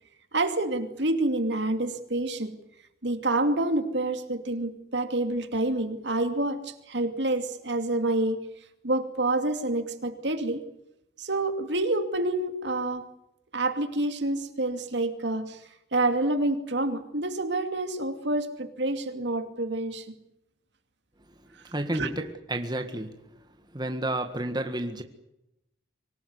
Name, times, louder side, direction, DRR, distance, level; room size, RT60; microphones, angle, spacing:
voice 1, 0.3-2.5 3.0-8.4 8.8-10.6 11.2-13.1 13.5-15.6 15.9-20.1 21.9-22.1, right 2 dB, 70° right, 2.7 m, -28 dB
voice 2, 21.7-23.4 23.7-25.0, right 1 dB, 20° right, 1.7 m, -31 dB
25.0 x 18.5 x 9.7 m
head